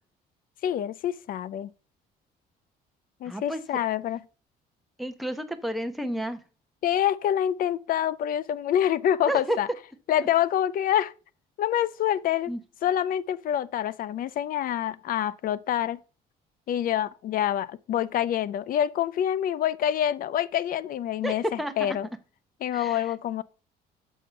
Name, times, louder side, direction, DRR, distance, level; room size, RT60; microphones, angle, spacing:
voice 1, 0.6-1.7 3.2-4.2 6.8-9.7 10.1-11.1 11.6-12.5 12.8-16.0 16.7-22.1 22.6-23.4, left 10 dB, 55° left, 0.5 m, -26 dB
voice 2, 3.2-3.6 5.0-6.4 9.3-9.6 12.5-12.6 21.2-22.0 22.7-23.1, right 1 dB, ahead, 0.9 m, -31 dB
6.4 x 5.5 x 5.6 m
cardioid pair, 110°, 17 cm